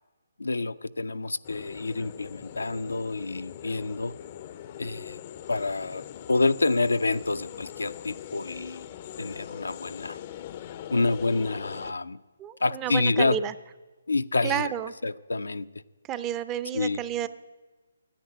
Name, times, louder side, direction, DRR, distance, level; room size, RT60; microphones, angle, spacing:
voice 1, 0.4-4.1 4.8-5.2 5.5-6.0 6.3-8.9 9.2-10.2 10.9-12.2 12.6-13.4 14.1-14.7 15.0-15.7 16.7-17.0, left 3 dB, 90° left, 12 dB, 0.5 m, -27 dB
sound 1, 1.4-11.9, left 11 dB, 35° left, 0.5 m, -42 dB
voice 2, 12.4-13.5 14.4-14.9 16.1-17.3, right 10 dB, 20° right, 14 dB, 0.4 m, -31 dB
10.0 x 9.4 x 9.1 m, 1.3 s
hypercardioid pair, 150°, 0 cm